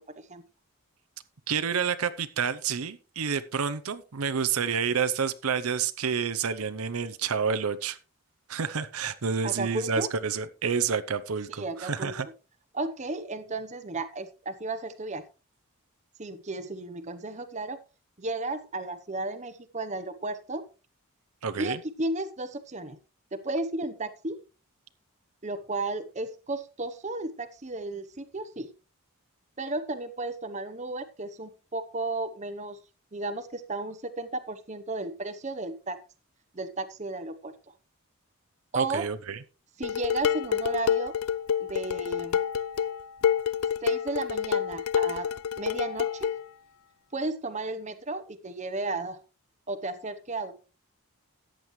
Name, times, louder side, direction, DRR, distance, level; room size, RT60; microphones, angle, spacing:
voice 1, 1.5-8.0 8.5-12.3 21.4-21.8 38.8-39.4, right 6 dB, 75° right, 10 dB, 0.7 m, -29 dB
voice 2, 9.4-10.1 11.5-12.1 12.7-15.2 16.2-17.8 18.2-20.6 21.6-23.0 23.3-24.4 25.4-28.7 29.6-32.8 33.1-36.0 36.5-37.5 38.7-39.0 39.8-41.2 41.6-42.4 43.8-46.3 47.1-49.2 49.7-50.5, right 2 dB, 30° right, 10 dB, 0.9 m, -34 dB
Dishes pots and pans, 39.8-46.4, left 8 dB, 75° left, 0.4 m, -28 dB
14.0 x 9.0 x 3.2 m, 0.33 s
head